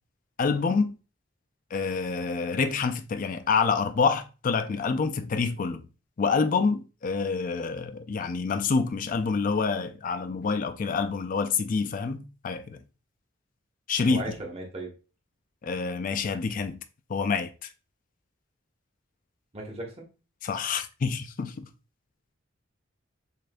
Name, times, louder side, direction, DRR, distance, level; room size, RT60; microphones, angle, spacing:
voice 1, 0.4-0.9 1.7-5.8 6.2-12.8 13.9-14.2 15.6-16.8 17.1-17.7 20.4-21.7, left 5 dB, 40° left, 0.4 m, -27 dB
voice 2, 14.1-14.9 19.5-20.1, right 2 dB, 30° right, 1.1 m, -36 dB
6.4 x 2.6 x 2.2 m
head